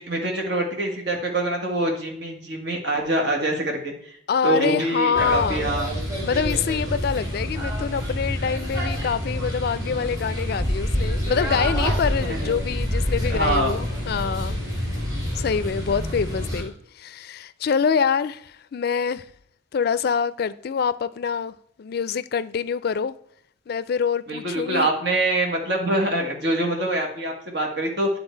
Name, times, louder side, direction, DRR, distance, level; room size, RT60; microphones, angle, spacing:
voice 1, 0.0-4.2 4.4-5.9 12.2-12.6 13.3-13.7 24.3-28.1, right 1 dB, 65° right, 1.7 m, -25 dB
voice 2, 4.3-5.7 6.2-14.6 15.3-19.2 19.7-23.2 23.7-24.9, left 6 dB, 55° left, 0.3 m, -25 dB
sound 1, 5.1-16.6, equal, 20° right, 2.6 m, -27 dB
9.9 x 3.9 x 4.4 m
head